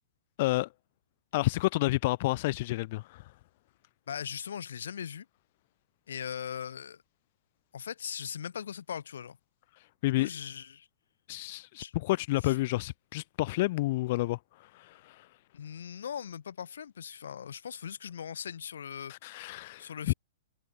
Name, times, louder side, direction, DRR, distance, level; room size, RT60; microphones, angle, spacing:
voice 1, 0.4-0.7 1.3-3.2 10.0-10.3 11.3-14.4 14.7-15.3 19.1-20.1, left 19 dB, 45° left, 1.2 m, -30 dB
voice 2, 4.1-5.3 6.1-7.0 7.7-9.4 10.2-10.9 11.8-11.9 12.4-12.6 15.5-19.1 19.8-20.1, left 8 dB, 85° left, 1.4 m, -39 dB
hypercardioid pair, 155°, 0 cm